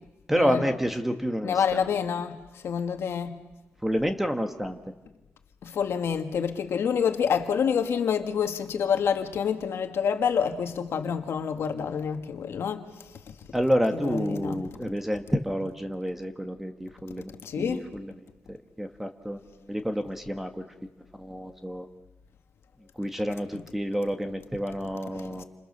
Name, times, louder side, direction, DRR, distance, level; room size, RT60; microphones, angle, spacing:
voice 1, 0.3-2.0 3.8-4.8 13.5-18.1 18.5-19.4 19.7-20.7 21.1-21.9 23.0-25.4, equal, 5° right, 1.5 m, -29 dB
voice 2, 1.4-3.4 5.6-12.8 14.0-14.6 17.4-17.8 25.4-25.5, left 7 dB, 75° left, 1.9 m, -27 dB
30.0 x 27.0 x 6.8 m
wide cardioid pair, 170°, 4 cm